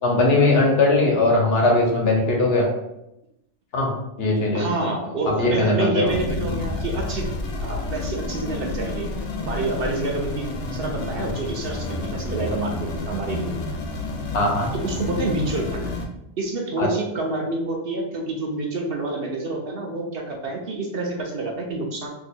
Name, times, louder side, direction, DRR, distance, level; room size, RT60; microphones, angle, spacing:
voice 1, 0.0-2.7 3.7-4.7 5.2-6.1 14.3-14.7 16.8-16.9, left 2 dB, 60° left, 0 dB, 0.9 m, -20 dB
voice 2, 4.5-7.3 7.6-9.1 9.4-11.9 12.1-13.6 14.8-15.8 16.4-22.1, right 2 dB, 60° right, 0 dB, 0.7 m, -28 dB
sound 1, 6.1-16.0, left 2 dB, 90° left, 0.9 m, -30 dB
2.8 x 2.2 x 4.1 m, 0.85 s
omnidirectional pair, 1.2 m